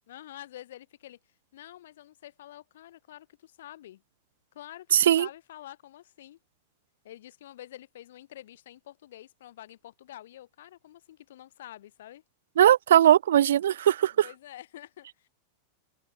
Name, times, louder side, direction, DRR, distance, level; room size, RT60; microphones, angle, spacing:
voice 1, 0.1-1.2 1.5-4.0 4.5-6.4 7.0-12.2 14.2-15.3, left 13 dB, 60° left, 5.4 m, -47 dB
voice 2, 4.9-5.3 12.6-14.3, right 11 dB, 60° right, 0.9 m, -20 dB
figure-of-eight pair, 90°, 0 cm